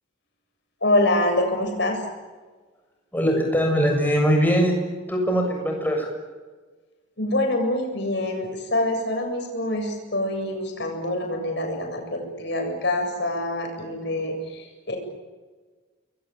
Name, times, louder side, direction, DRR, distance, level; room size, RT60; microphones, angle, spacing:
voice 1, 0.8-2.0 7.2-15.0, left 1 dB, 60° left, 3 dB, 7.7 m, -25 dB
voice 2, 3.1-4.7 5.1-6.1, equal, 10° left, 2 dB, 7.2 m, -21 dB
28.5 x 22.0 x 9.2 m, 1.4 s
head